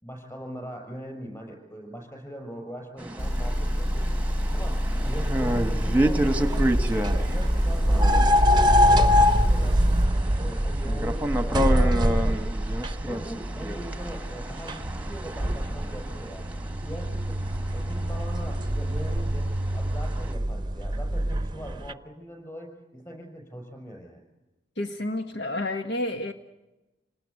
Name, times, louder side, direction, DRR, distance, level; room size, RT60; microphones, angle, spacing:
voice 1, 0.0-6.6 6.9-8.3 8.8-10.0 10.4-12.6 13.0-16.5 16.7-17.4 17.7-24.2, equal, 15° left, 3 dB, 6.5 m, -41 dB
sound 1, 3.0-20.3, right 1 dB, 10° right, 1.3 m, -31 dB
Motor vehicle (road) / Engine, 3.2-10.1, equal, 50° left, 1.6 m, -27 dB
sound 2, 6.2-21.9, equal, 25° right, 0.7 m, -24 dB
voice 2, 24.8-26.3, left 1 dB, 70° left, 8 dB, 1.4 m, -30 dB
27.5 x 19.0 x 8.4 m, 1.0 s
head